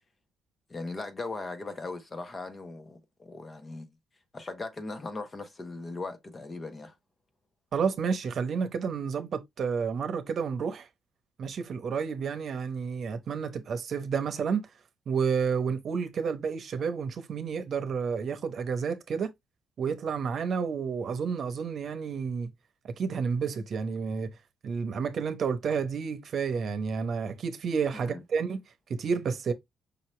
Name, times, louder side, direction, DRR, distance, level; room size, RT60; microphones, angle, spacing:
voice 1, 0.7-3.9 4.3-6.9 27.9-28.2, left 3 dB, 30° left, 1.1 m, -39 dB
voice 2, 7.7-10.9 11.4-14.7 15.1-19.3 19.8-22.5 22.8-24.4 24.6-28.6 28.9-29.5, right 6 dB, 55° right, 0.9 m, -30 dB
5.4 x 2.9 x 3.2 m
cardioid pair, 90°, 0 cm